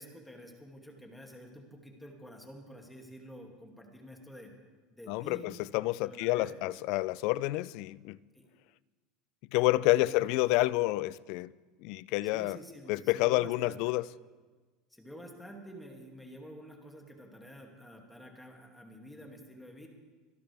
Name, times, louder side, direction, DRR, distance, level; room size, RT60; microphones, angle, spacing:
voice 1, 0.0-4.5 4.9-5.5 6.0-6.8 8.3-8.4 9.9-10.3 12.2-13.8 14.9-19.9, equal, 5° left, 2.3 m, -49 dB
voice 2, 5.1-8.2 9.5-11.5 11.8-12.6 12.9-14.1, left 18 dB, 65° left, 0.4 m, -29 dB
25.5 x 12.0 x 3.4 m
supercardioid pair, 125°, 0 cm